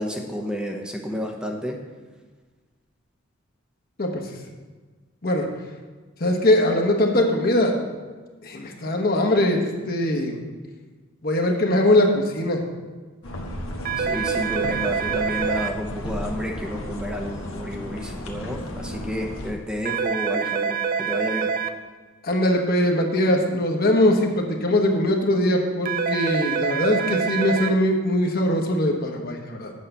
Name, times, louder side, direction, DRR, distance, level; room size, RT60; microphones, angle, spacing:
voice 1, 0.0-1.8 14.0-21.5, equal, 5° right, 1 dB, 0.8 m, -31 dB
voice 2, 6.2-7.7 8.4-10.4 11.2-12.6 22.2-29.7, left 1 dB, 50° left, 2 dB, 1.2 m, -21 dB
sound 1, 13.2-19.5, equal, 90° left, 1.3 m, -34 dB
sound 2, 13.9-15.7 19.9-21.7 25.9-27.7, right 6 dB, 45° right, 0.5 m, -25 dB
8.4 x 5.7 x 6.7 m, 1.4 s
head